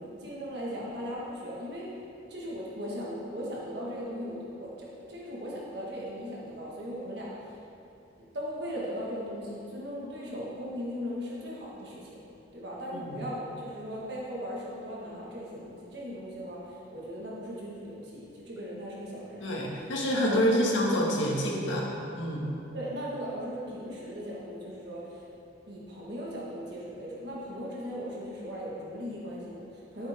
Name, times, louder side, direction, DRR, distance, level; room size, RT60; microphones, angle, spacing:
voice 1, 0.0-1.9 2.3-7.6 8.3-12.2 12.5-19.5 19.8-19.9 20.2-20.6 22.7-25.2 25.7-30.1, equal, 60° right, -5 dB, 1.8 m, -38 dB
voice 2, 19.4-22.5, equal, 85° left, -3 dB, 2.0 m, -27 dB
13.0 x 8.0 x 3.7 m, 2.7 s
head